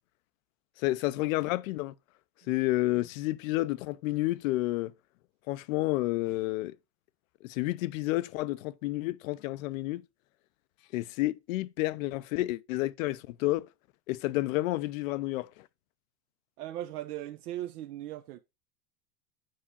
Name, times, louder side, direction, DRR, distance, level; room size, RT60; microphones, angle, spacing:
voice 1, 0.8-1.9 2.5-4.9 5.5-6.7 7.4-10.0 10.9-13.7 14.1-15.7, left 18 dB, 60° left, 0.6 m, -30 dB
voice 2, 16.6-18.4, right 13 dB, 75° right, 0.9 m, -38 dB
7.7 x 4.9 x 4.1 m
hypercardioid pair, 120°, 46 cm